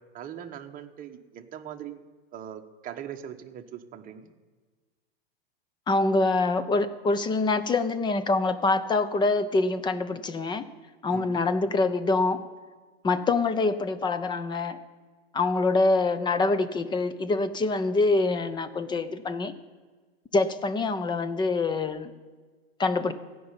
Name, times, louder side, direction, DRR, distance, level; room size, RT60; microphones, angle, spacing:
voice 1, 0.0-2.0 2.3-4.3 11.1-11.4, right 9 dB, 25° right, 5 dB, 1.1 m, -41 dB
voice 2, 5.9-10.7 11.0-12.5 13.0-14.8 15.3-19.5 20.3-22.1 22.8-23.1, left 3 dB, 15° left, 12 dB, 0.7 m, -25 dB
16.0 x 5.5 x 9.8 m, 1.4 s
hypercardioid pair, 125°, 31 cm